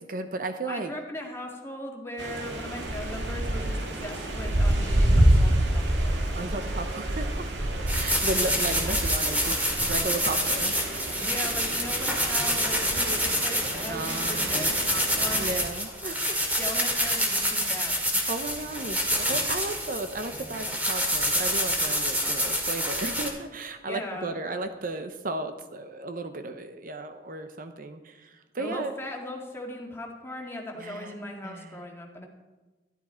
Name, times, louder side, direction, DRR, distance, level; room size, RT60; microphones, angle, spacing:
voice 1, 0.0-0.9 6.3-10.8 13.9-14.7 15.4-16.6 18.3-28.9 30.8-31.1 31.4-31.8, right 2 dB, 50° right, 8 dB, 0.8 m, -35 dB
voice 2, 0.7-6.2 11.2-15.5 16.6-17.9 23.8-24.3 28.6-32.3, left 1 dB, 15° left, 0 dB, 1.9 m, -38 dB
sound 1, 2.2-15.6, right 1 dB, 85° right, 1.9 m, -28 dB
sound 2, 7.9-23.3, equal, 10° right, 2.2 m, -27 dB
13.0 x 12.0 x 4.4 m, 1.2 s
head